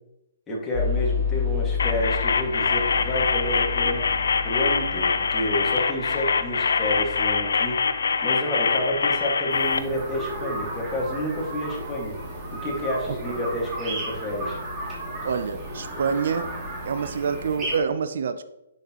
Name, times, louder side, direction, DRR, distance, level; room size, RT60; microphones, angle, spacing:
voice 1, 0.5-4.0 4.4-7.8 8.2-12.1 12.5-14.6, left 1 dB, 10° left, -3 dB, 2.0 m, -29 dB
sound 1, 0.7-9.4, left 6 dB, 45° left, 2.6 m, -31 dB
sound 2, 1.8-9.8, left 5 dB, 80° left, 0.7 m, -24 dB
sound 3, 9.5-17.8, right 1 dB, 15° right, 2.6 m, -34 dB
voice 2, 15.2-16.5 16.9-18.4, right 6 dB, 65° right, 11 dB, 0.6 m, -26 dB
9.8 x 6.6 x 3.0 m, 0.90 s
hypercardioid pair, 155°, 0 cm